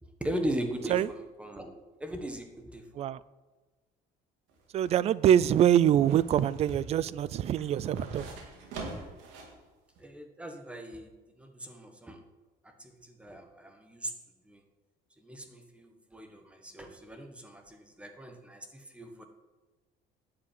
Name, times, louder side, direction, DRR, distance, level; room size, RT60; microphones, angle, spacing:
voice 1, 0.0-1.7 2.0-3.1 10.0-11.1 11.4-12.2 12.6-14.1 14.5-14.6 15.2-19.2, right 1 dB, 5° right, 1.3 m, -39 dB
sound 1, 4.5-9.6 10.0-10.1, right 3 dB, 85° right, 3.7 m, -44 dB
voice 2, 4.7-8.3, right 10 dB, 35° right, 0.4 m, -24 dB
12.0 x 8.6 x 9.1 m
cardioid pair, 175°, 19 cm